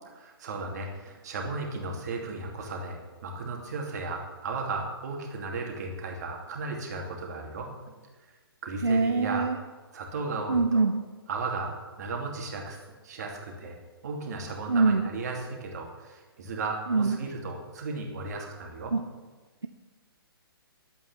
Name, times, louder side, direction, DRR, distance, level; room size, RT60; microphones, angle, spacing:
voice 1, 0.1-7.7 8.6-9.5 9.9-10.9 11.3-12.8 13.0-13.8 14.0-18.9, right 3 dB, 45° right, 1 dB, 2.6 m, -35 dB
voice 2, 8.8-9.6 10.5-11.0 14.7-15.1 16.9-17.2 18.9-19.1, right 3 dB, 75° right, 6 dB, 0.8 m, -24 dB
11.5 x 8.5 x 7.3 m, 1.3 s
figure-of-eight pair, 125°, 13 cm